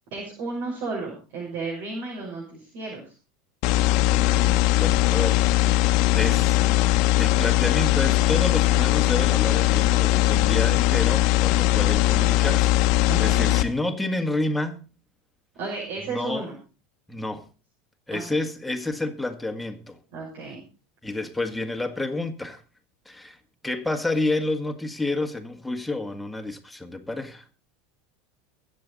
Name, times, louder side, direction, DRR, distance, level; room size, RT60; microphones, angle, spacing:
voice 1, 0.1-3.0 13.1-13.5 15.6-16.5 18.1-18.4 20.1-20.6, right 3 dB, 60° right, 6.3 m, -33 dB
sound 1, 3.6-13.6, left 16 dB, 55° left, 1.2 m, -20 dB
voice 2, 4.1-6.6 7.2-14.9 16.1-16.5 17.1-17.5 18.1-20.0 21.0-22.6 23.1-23.4 23.6-27.4, left 2 dB, 5° left, 1.9 m, -29 dB
22.5 x 7.8 x 4.1 m
hypercardioid pair, 80°, 0 cm